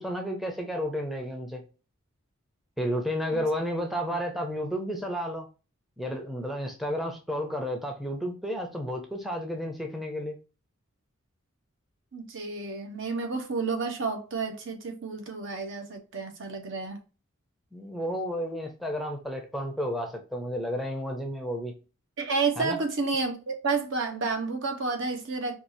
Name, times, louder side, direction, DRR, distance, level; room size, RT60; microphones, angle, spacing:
voice 1, 0.0-1.6 2.8-5.5 6.0-10.4 17.7-21.8 22.6-22.8, equal, ahead, 0.5 m, -32 dB
voice 2, 12.1-17.0 22.2-25.5, right 4 dB, 60° right, 0.9 m, -30 dB
4.6 x 2.4 x 2.6 m
head